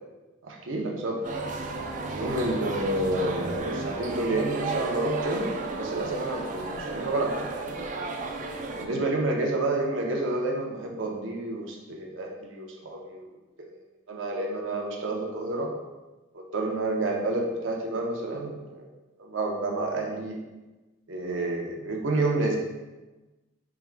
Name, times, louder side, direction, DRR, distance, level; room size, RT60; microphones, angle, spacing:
voice 1, 0.4-1.2 2.1-7.5 8.8-13.3 13.6-13.7 14.1-15.7 16.3-18.9 19.2-20.4 21.1-22.6, right 2 dB, 90° right, 0 dB, 0.7 m, -29 dB
sound 1, 1.2-8.9, right 3 dB, 40° right, 0.3 m, -33 dB
4.6 x 3.5 x 2.2 m, 1.1 s
head